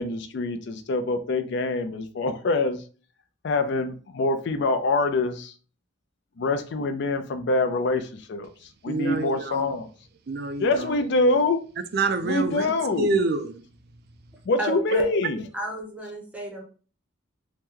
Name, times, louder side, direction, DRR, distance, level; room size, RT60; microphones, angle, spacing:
voice 1, 0.0-2.8 3.4-5.5 6.4-8.5 8.8-9.9 10.6-11.6 12.2-13.1 14.5-15.4, left 2 dB, 60° left, 0.4 m, -25 dB
voice 2, 8.9-9.7 10.3-10.9 11.9-12.7 13.0-13.5, right 3 dB, 50° right, 0.4 m, -26 dB
voice 3, 14.6-15.1 15.5-16.6, right 1 dB, 5° right, 0.6 m, -31 dB
2.9 x 2.1 x 3.6 m
head